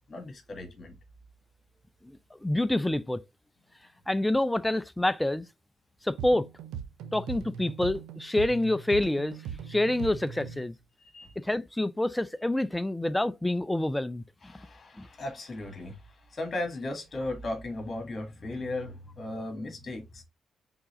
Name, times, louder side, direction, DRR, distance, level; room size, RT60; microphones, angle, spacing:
voice 1, 0.1-1.0 11.0-11.3 14.4-16.0 16.3-20.2, left 2 dB, 35° left, 1.5 m, -36 dB
voice 2, 2.0-3.2 4.1-5.4 6.0-6.5 7.1-10.7 11.4-14.2 15.0-15.1, left 1 dB, 10° left, 0.4 m, -27 dB
sound 1, 6.2-10.7, right 8 dB, 65° right, 0.4 m, -40 dB
4.6 x 3.7 x 2.9 m
figure-of-eight pair, 40°, 0 cm